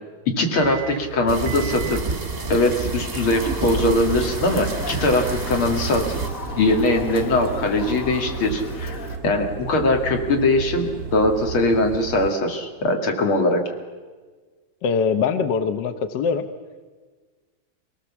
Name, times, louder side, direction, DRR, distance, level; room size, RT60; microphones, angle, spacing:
voice 1, 0.3-2.0 2.5-6.2 6.6-9.0 9.2-13.6, left 2 dB, 80° left, 3 dB, 2.9 m, -21 dB
sound 1, 0.5-12.3, right 6 dB, 70° right, 0.7 m, -34 dB
sound 2, 1.3-6.3, right 3 dB, 25° right, 1.0 m, -30 dB
Motor vehicle (road) / Siren, 3.3-9.2, left 2 dB, 45° left, 1.8 m, -35 dB
voice 2, 14.8-16.5, left 6 dB, 65° left, 9 dB, 1.4 m, -22 dB
23.5 x 18.0 x 7.2 m, 1.4 s
omnidirectional pair, 2.3 m